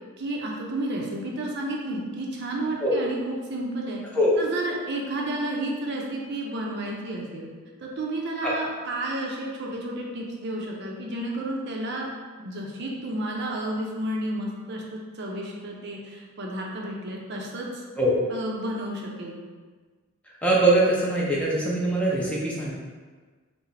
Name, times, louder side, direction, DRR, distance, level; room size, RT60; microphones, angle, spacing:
voice 1, 0.2-4.0 4.4-7.5 7.8-12.1 12.4-17.8 18.3-19.4, right 1 dB, 50° right, -1 dB, 0.5 m, -31 dB
voice 2, 20.4-22.7, right 1 dB, 5° left, -5 dB, 0.5 m, -22 dB
4.5 x 2.0 x 3.3 m, 1.4 s
head